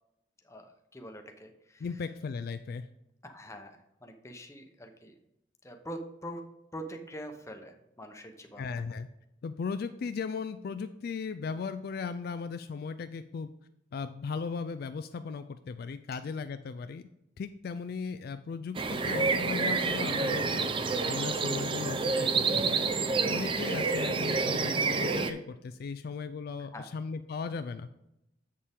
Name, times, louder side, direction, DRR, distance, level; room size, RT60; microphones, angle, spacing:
voice 1, 0.4-1.8 3.2-5.1 5.6-6.4 6.7-8.7 16.1-16.2 26.6-26.9, equal, 15° left, 5 dB, 0.8 m, -44 dB
voice 2, 1.8-2.9 8.6-9.1 9.4-13.5 13.9-17.1 17.4-22.9 23.2-27.9, left 5 dB, 55° left, 10 dB, 0.3 m, -37 dB
sound 1, 18.7-25.3, right 4 dB, 30° right, 0.5 m, -28 dB
7.4 x 6.5 x 3.5 m, 0.85 s
head